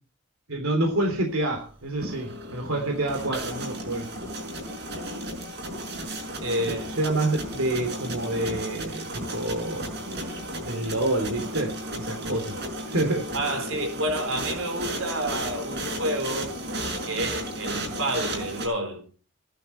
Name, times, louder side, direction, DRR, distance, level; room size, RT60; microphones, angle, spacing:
voice 1, 0.5-4.1 7.0-9.9 10.7-12.6 12.9-13.3, right 1 dB, 85° right, 3.3 m, -27 dB
sound 1, 1.8-18.7, right 1 dB, 50° right, 5.9 m, -34 dB
voice 2, 6.4-7.0 13.3-16.6 17.1-19.1, right 1 dB, 70° right, 4.5 m, -29 dB
16.0 x 12.0 x 4.4 m
head